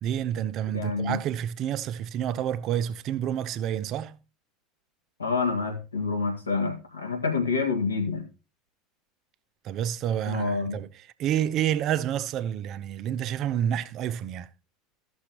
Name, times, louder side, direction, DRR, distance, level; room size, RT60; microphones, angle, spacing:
voice 1, 0.0-4.2 9.6-14.5, right 10 dB, 50° right, 0.7 m, -29 dB
voice 2, 0.7-1.2 5.2-8.2 10.3-10.8, left 4 dB, 90° left, 1.9 m, -27 dB
14.5 x 6.3 x 3.0 m
hypercardioid pair, 75°, 0 cm